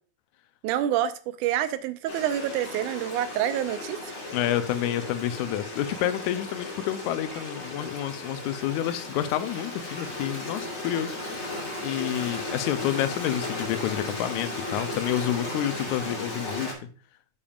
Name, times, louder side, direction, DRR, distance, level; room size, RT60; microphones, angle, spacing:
voice 1, 0.6-4.1, right 11 dB, 85° right, 2.2 m, -27 dB
Stream, 2.1-16.7, left 2 dB, 45° left, 3.3 m, -35 dB
voice 2, 4.3-11.5 11.8-16.7, left 12 dB, 80° left, 1.9 m, -29 dB
10.0 x 7.0 x 2.3 m
omnidirectional pair, 3.5 m